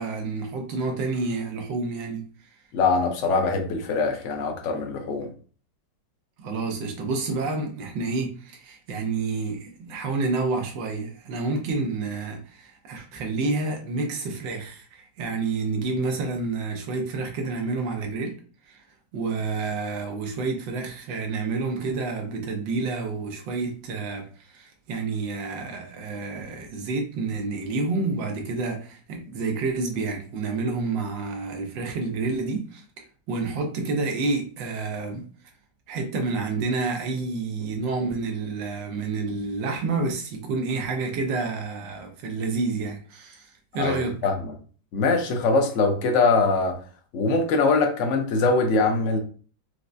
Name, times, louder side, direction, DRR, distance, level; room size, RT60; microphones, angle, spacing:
voice 1, 0.0-2.3 6.4-18.3 18.7-18.8 19.1-32.8 33.3-35.2 35.9-44.2, right 3 dB, 90° right, 1.5 m, -29 dB
voice 2, 2.7-5.3 43.8-44.5 44.9-46.8 47.1-49.2, left 3 dB, 65° left, 0.7 m, -22 dB
4.5 x 2.1 x 2.5 m
omnidirectional pair, 1.9 m